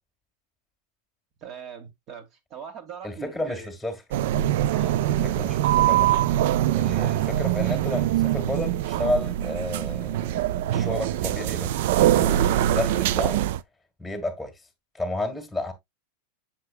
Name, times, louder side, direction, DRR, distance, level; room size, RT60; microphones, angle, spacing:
voice 1, 1.4-3.7 4.7-5.1, right 7 dB, 40° right, 2.0 m, -41 dB
voice 2, 3.0-4.0 5.1-6.2 6.7-11.7 12.1-13.4 14.0-14.5 14.9-15.7, left 2 dB, ahead, 2.0 m, -32 dB
sound 1, 4.1-13.6, right 12 dB, 60° right, 0.4 m, -23 dB
7.5 x 6.7 x 2.4 m
figure-of-eight pair, 95°, 0 cm